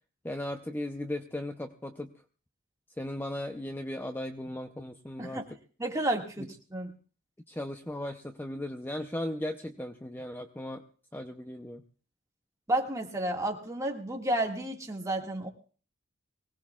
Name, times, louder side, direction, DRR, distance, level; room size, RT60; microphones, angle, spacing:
voice 1, 0.2-2.1 3.0-5.6 6.4-6.5 7.5-10.8 11.1-11.8, left 1 dB, 10° left, 6 dB, 0.6 m, -37 dB
voice 2, 5.2-5.5 5.8-6.9 12.7-15.5, right 1 dB, 15° right, 1 dB, 1.9 m, -31 dB
24.0 x 18.0 x 2.4 m, 0.40 s
head